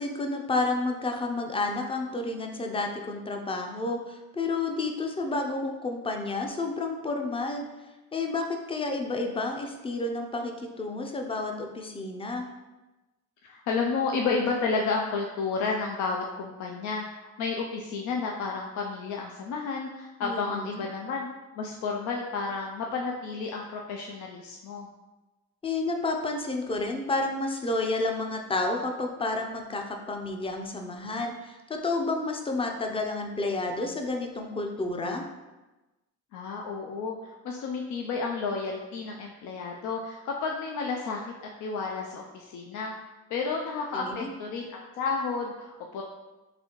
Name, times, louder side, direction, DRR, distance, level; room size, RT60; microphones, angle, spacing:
voice 1, 0.0-7.6 8.1-12.4 20.2-20.8 25.6-35.2 43.9-44.3, left 2 dB, 20° left, 3 dB, 0.5 m, -30 dB
voice 2, 13.4-21.3 21.6-24.9 36.3-41.3 41.6-46.0, left 4 dB, 75° left, 0 dB, 0.5 m, -31 dB
4.0 x 2.7 x 2.9 m, 1.1 s
cardioid pair, 90°, 30 cm